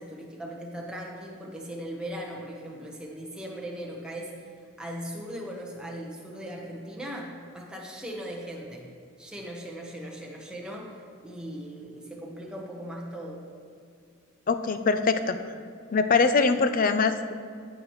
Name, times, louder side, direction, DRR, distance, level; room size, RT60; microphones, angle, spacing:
voice 1, 0.0-8.9 9.2-13.4, equal, 5° right, -2 dB, 1.1 m, -39 dB
voice 2, 14.5-15.4 15.9-17.3, left 4 dB, 40° left, 10 dB, 0.4 m, -23 dB
14.5 x 6.4 x 3.1 m, 2.4 s
head